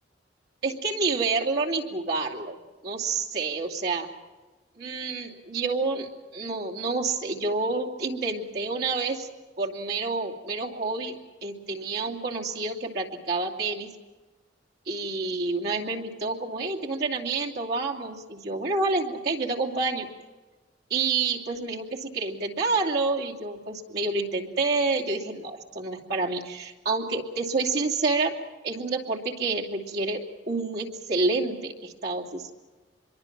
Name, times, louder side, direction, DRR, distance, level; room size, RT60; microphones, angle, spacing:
voice 1, 0.6-2.5 2.8-4.1 4.8-9.3 9.6-13.9 14.9-20.1 20.9-26.4 26.9-28.3 28.6-32.4, right 3 dB, 60° right, -2 dB, 2.7 m, -28 dB
25.5 x 23.0 x 6.0 m, 1.2 s
head